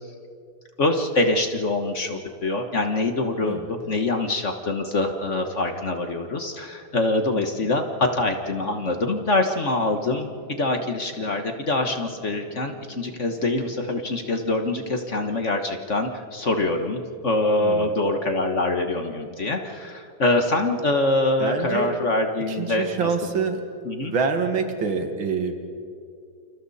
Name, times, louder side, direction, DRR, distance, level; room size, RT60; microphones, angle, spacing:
voice 1, 0.8-23.1 23.9-24.1, left 2 dB, 40° left, 5 dB, 1.5 m, -24 dB
sound 1, 8.2-15.3, right 1 dB, 65° left, 6.3 m, -49 dB
voice 2, 21.4-21.9 22.5-23.6 24.0-25.5, right 5 dB, 75° right, 5 dB, 2.6 m, -26 dB
29.0 x 28.0 x 4.2 m, 2.3 s
omnidirectional pair, 2.2 m